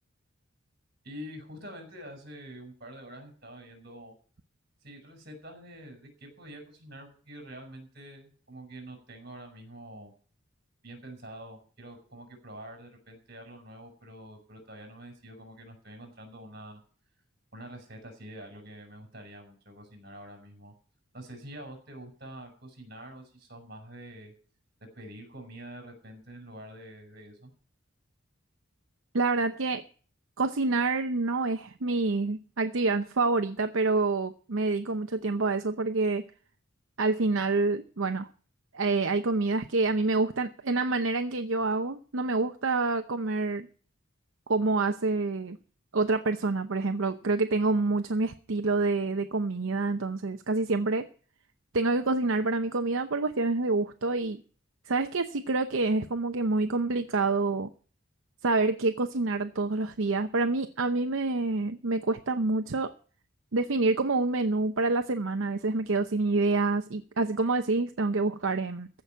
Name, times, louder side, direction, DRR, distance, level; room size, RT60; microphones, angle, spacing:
voice 1, 1.0-4.1 4.8-10.1 10.8-16.8 17.5-20.7 21.1-24.3 24.9-27.5, right 1 dB, 50° right, 4 dB, 5.6 m, -46 dB
voice 2, 29.1-29.8 30.4-36.2 37.0-38.3 38.7-43.7 44.5-45.6 45.9-51.1 51.7-54.4 54.9-57.7 58.4-62.9 63.5-68.9, right 3 dB, 75° right, 7 dB, 0.8 m, -27 dB
15.0 x 6.1 x 9.1 m, 0.41 s
head